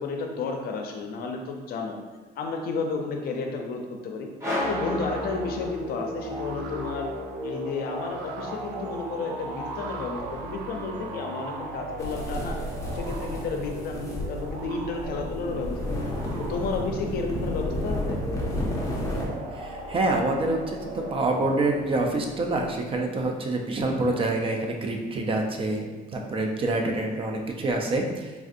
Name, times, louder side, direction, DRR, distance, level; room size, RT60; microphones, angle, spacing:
voice 1, 0.0-2.0 2.4-4.3 4.7-7.1 7.4-12.6 12.9-16.0 16.4-18.2, left 4 dB, 65° left, 3 dB, 0.5 m, -32 dB
sound 1, 4.4-6.2, left 1 dB, 15° right, 1.0 m, -31 dB
sound 2, 4.6-23.0, right 1 dB, 80° right, 0.5 m, -36 dB
sound 3, 12.0-19.3, left 1 dB, 20° left, 0.7 m, -32 dB
voice 2, 19.5-28.3, right 2 dB, 30° right, 2 dB, 0.4 m, -27 dB
3.4 x 2.5 x 2.5 m, 1.2 s
cardioid pair, 110°, 17 cm